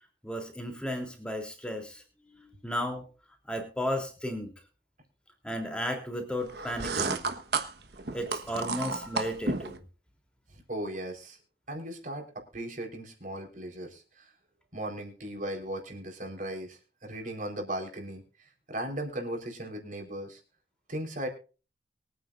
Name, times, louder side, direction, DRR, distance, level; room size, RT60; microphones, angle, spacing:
voice 1, 0.2-3.0 3.5-4.5 5.4-7.3 8.1-9.8, equal, 5° left, 3 dB, 3.3 m, -34 dB
sound 1, 6.5-9.8, right 4 dB, 65° right, 1.4 m, -32 dB
voice 2, 10.5-11.4 11.7-12.3 12.5-14.3 14.7-20.4 20.9-21.3, right 1 dB, 45° right, 3 dB, 4.3 m, -37 dB
23.5 x 9.3 x 2.6 m, 0.35 s
head